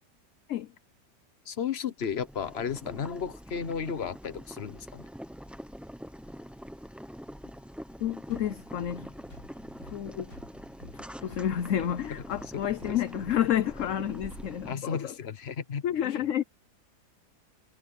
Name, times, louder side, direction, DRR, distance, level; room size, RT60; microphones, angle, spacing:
voice 1, 1.5-5.0 12.9-13.0 14.7-16.3, left 7 dB, 40° left, 1.2 m, -34 dB
Boiling, 2.0-14.7, equal, ahead, 0.4 m, -45 dB
voice 2, 8.0-9.1 9.8-10.3 10.9-15.1 15.8-16.4, left 10 dB, 60° left, 1.0 m, -30 dB
sound 1, 8.3-14.5, left 2 dB, 85° left, 7.0 m, -51 dB
omnidirectional pair, 1.8 m